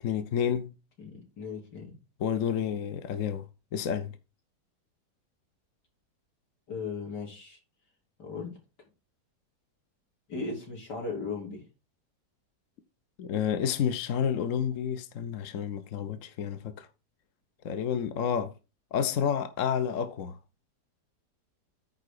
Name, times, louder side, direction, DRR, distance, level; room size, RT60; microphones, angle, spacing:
voice 1, 0.0-0.7 2.2-3.4 3.7-4.2 13.2-16.9 17.6-18.5 18.9-20.4, left 8 dB, 55° left, 1.1 m, -30 dB
voice 2, 1.0-2.0 6.7-7.6 8.2-8.6 10.3-11.7, left 4 dB, 85° left, 3.8 m, -37 dB
9.6 x 3.8 x 6.7 m
omnidirectional pair, 1.8 m